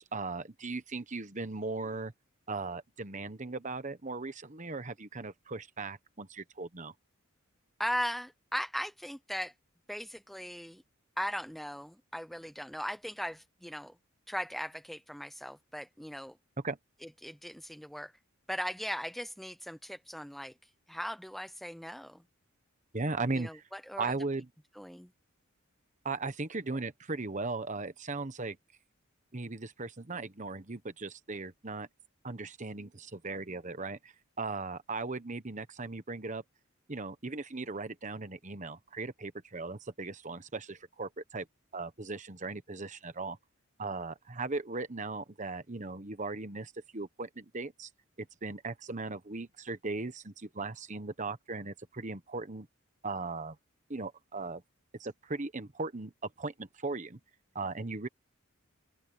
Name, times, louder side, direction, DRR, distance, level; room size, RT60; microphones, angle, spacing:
voice 1, 0.0-2.1 2.5-6.9 16.6-16.8 22.9-23.6 24.0-24.5 26.0-28.6 29.3-31.9 32.2-36.4 36.9-41.5 41.7-43.4 43.8-47.9 48.2-52.7 53.0-53.6 53.9-54.6 55.0-56.1 56.4-57.2 57.5-58.1, right 3 dB, 35° right, 1.2 m, -38 dB
voice 2, 7.8-9.5 9.9-10.8 11.2-13.9 14.3-16.4 17.0-18.1 18.5-20.5 20.9-22.2 23.3-24.1 24.8-25.1, equal, ahead, 0.5 m, -38 dB
open air
head